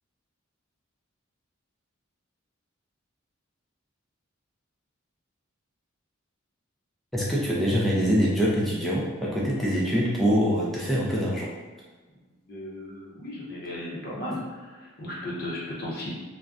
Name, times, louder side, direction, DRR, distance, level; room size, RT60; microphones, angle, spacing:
voice 1, 7.1-11.5, equal, ahead, -6 dB, 0.4 m, -24 dB
voice 2, 12.5-14.4 14.7-16.1, left 1 dB, 50° left, -5 dB, 0.6 m, -35 dB
2.5 x 2.1 x 3.4 m, 1.3 s
head